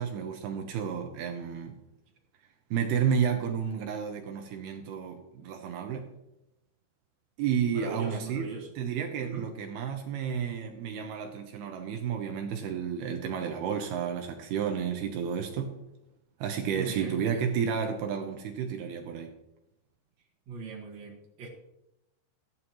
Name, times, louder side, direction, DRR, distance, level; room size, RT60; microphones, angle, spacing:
voice 1, 0.0-1.7 2.7-6.1 7.4-8.5 8.8-15.7 16.4-19.3, right 7 dB, 75° right, 4 dB, 2.8 m, -31 dB
voice 2, 7.7-8.7 9.2-9.5 16.7-17.2 20.5-21.5, right 5 dB, 50° right, 1 dB, 2.4 m, -39 dB
14.5 x 11.5 x 3.1 m, 0.88 s
omnidirectional pair, 4.7 m